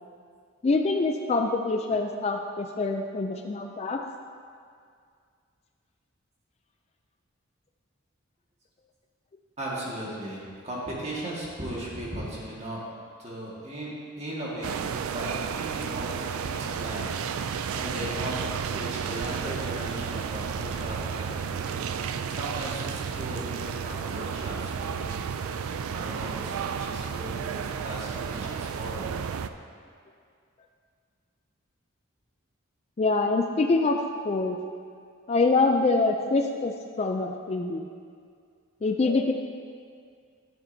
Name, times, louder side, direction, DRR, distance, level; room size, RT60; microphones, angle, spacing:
voice 1, 0.6-4.0 33.0-34.6 35.3-36.7 37.0-37.9 38.8-39.3, left 3 dB, 30° left, 4 dB, 0.3 m, -25 dB
voice 2, 9.6-12.8 13.2-13.9 14.2-29.2, right 1 dB, 30° right, -6 dB, 1.7 m, -37 dB
sound 1, 14.6-29.5, right 6 dB, 85° right, 0.4 m, -32 dB
12.0 x 6.9 x 2.7 m, 2.2 s
head